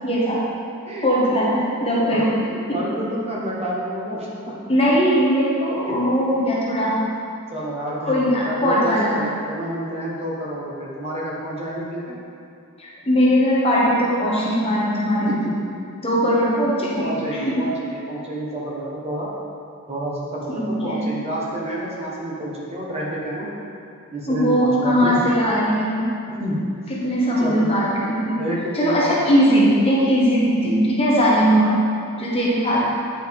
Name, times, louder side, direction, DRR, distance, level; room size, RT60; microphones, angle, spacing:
voice 1, 0.0-0.4 1.0-2.4 2.7-2.8 4.7-7.0 8.0-9.2 12.8-15.3 16.0-17.6 20.5-21.0 24.3-26.1 26.9-28.4 28.7-31.7 32.2-32.8, equal, 25° left, -5 dB, 1.1 m, -19 dB
voice 2, 0.9-1.3 1.6-4.6 5.8-6.0 7.5-12.2 15.2-15.5 17.0-19.3 19.9-23.5 24.1-25.2 26.4-26.6 27.4-27.7 28.4-29.2, right 1 dB, 30° right, -5 dB, 1.0 m, -29 dB
8.8 x 4.9 x 3.5 m, 2.6 s
head